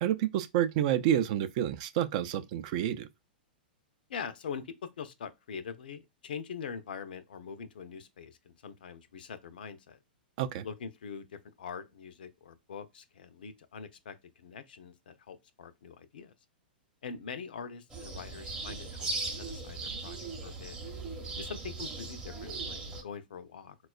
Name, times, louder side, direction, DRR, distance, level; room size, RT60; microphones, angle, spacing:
voice 1, 0.0-3.1 10.4-10.7, right 11 dB, 45° right, 0.4 m, -29 dB
voice 2, 4.1-10.0 10.6-16.3 17.0-20.8 21.4-23.8, left 6 dB, 65° left, 0.5 m, -43 dB
sound 1, 17.9-23.0, right 3 dB, 15° right, 0.7 m, -38 dB
4.0 x 2.3 x 2.2 m
figure-of-eight pair, 105°, 5 cm